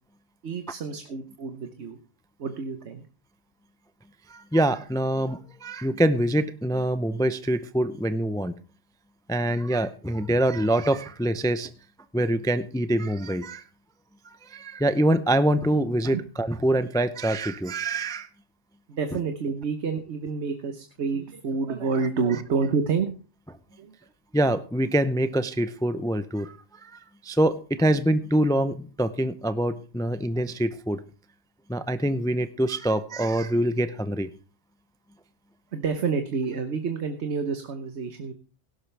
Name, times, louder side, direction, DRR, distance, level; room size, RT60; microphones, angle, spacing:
voice 1, 0.4-2.0 2.4-3.0 16.1-16.2 18.9-23.1 23.8-23.9 35.7-38.3, right 5 dB, 75° right, 7 dB, 1.3 m, -28 dB
voice 2, 4.3-8.5 9.3-11.7 12.1-13.6 14.4-18.3 24.3-26.6 26.8-31.0 31.7-34.3, right 1 dB, 5° left, 12 dB, 0.4 m, -25 dB
17.0 x 11.5 x 3.4 m, 0.36 s
omnidirectional pair, 1.2 m